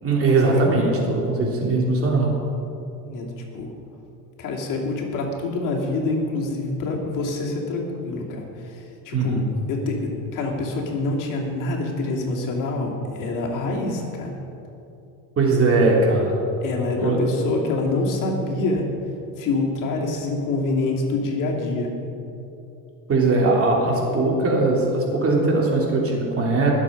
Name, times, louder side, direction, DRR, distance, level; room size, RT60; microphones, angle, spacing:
voice 1, 0.0-2.3 9.1-9.5 15.4-16.4 17.0-17.2 23.1-26.7, right 3 dB, 35° right, -2 dB, 3.2 m, -20 dB
voice 2, 3.0-3.7 4.4-9.4 9.7-14.4 16.6-18.8 19.4-21.9, left 2 dB, 50° left, -1 dB, 2.7 m, -26 dB
19.5 x 7.5 x 5.3 m, 2.9 s
supercardioid pair, 100°, 39 cm